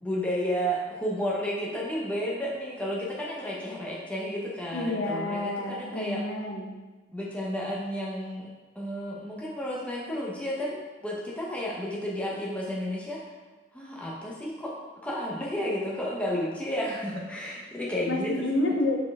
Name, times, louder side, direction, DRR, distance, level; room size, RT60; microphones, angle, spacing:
voice 1, 0.0-6.2 7.1-8.5 8.7-13.2 13.7-14.7 15.0-18.4, equal, 5° left, -5 dB, 0.9 m, -32 dB
voice 2, 4.7-6.8 18.1-19.0, left 2 dB, 60° left, 0 dB, 1.0 m, -29 dB
6.9 x 4.5 x 3.6 m, 1.2 s
head